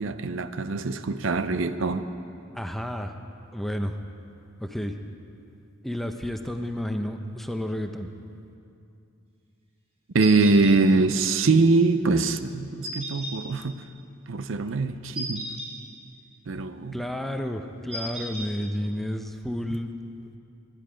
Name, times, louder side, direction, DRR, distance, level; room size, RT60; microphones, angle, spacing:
voice 1, 0.0-2.1 10.1-13.8 14.3-15.5 16.5-17.0, right 3 dB, 65° right, 11 dB, 0.6 m, -23 dB
voice 2, 2.5-3.1 3.5-3.9 4.6-5.0 5.8-8.1 16.9-19.9, equal, ahead, 5 dB, 0.7 m, -31 dB
sound 1, 10.2-10.7 12.8-13.3 15.1-15.7 17.9-18.5, right 1 dB, 30° right, 4.1 m, -34 dB
24.0 x 10.5 x 5.1 m, 2.6 s
head